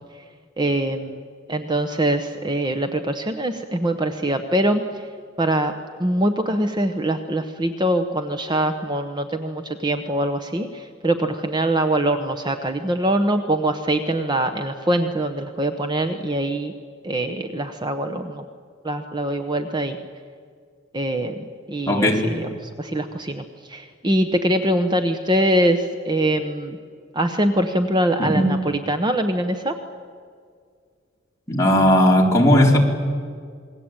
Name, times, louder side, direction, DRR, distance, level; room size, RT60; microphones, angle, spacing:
voice 1, 0.6-1.2 1.5-5.1 5.4-5.7 6.0-16.7 17.0-18.4 18.8-20.0 20.9-26.8 27.1-29.7, right 1 dB, 20° right, 7 dB, 1.0 m, -23 dB
voice 2, 21.9-22.3 28.2-28.6 31.5-32.8, left 1 dB, 15° left, -2 dB, 3.9 m, -16 dB
28.0 x 21.0 x 8.9 m, 2.1 s
head